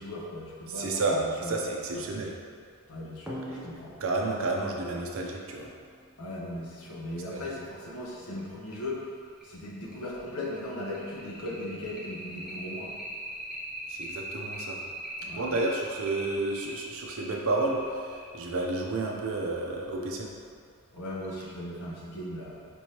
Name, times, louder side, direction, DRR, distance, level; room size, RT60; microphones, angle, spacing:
voice 1, 0.0-1.6 1.9-2.1 2.9-3.9 6.2-9.0 9.4-13.0 15.2-15.6 20.9-22.7, left 1 dB, 80° left, -4 dB, 0.8 m, -38 dB
voice 2, 0.7-2.3 4.0-5.7 13.9-14.8 15.3-18.0 18.3-20.3, right 2 dB, 65° right, 0 dB, 0.6 m, -30 dB
sound 1, 3.3-6.4 7.9-8.0 8.4-8.5 8.9-9.0 9.4-19.5, right 1 dB, ahead, 0.6 m, -42 dB
5.2 x 3.1 x 2.9 m, 2.2 s
head